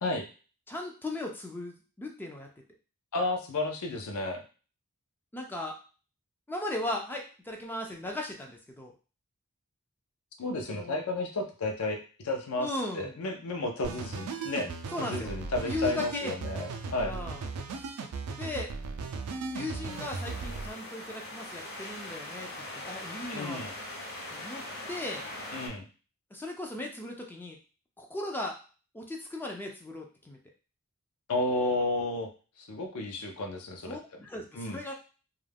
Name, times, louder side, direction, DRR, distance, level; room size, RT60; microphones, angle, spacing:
voice 1, 0.7-2.5 5.3-5.8 6.5-8.9 10.7-11.0 12.6-13.2 14.9-15.3 15.6-16.4 17.0-17.4 18.3-18.7 19.5-22.5 22.7-23.6 24.3-24.6 24.9-25.2 26.3-27.6 28.0-28.6 28.9-30.4 33.9-34.9, left 1 dB, 10° left, 1 dB, 0.3 m, -37 dB
voice 2, 3.1-4.4 10.4-14.7 15.0-17.1 23.3-23.7 25.5-25.8 31.3-32.3 32.7-34.0 34.5-34.8, left 2 dB, 75° left, 4 dB, 0.6 m, -32 dB
sound 1, 13.8-20.7, right 4 dB, 80° right, 0.4 m, -37 dB
sound 2, 19.9-25.7, left 1 dB, 50° left, 0.9 m, -41 dB
2.3 x 2.2 x 3.3 m, 0.36 s
head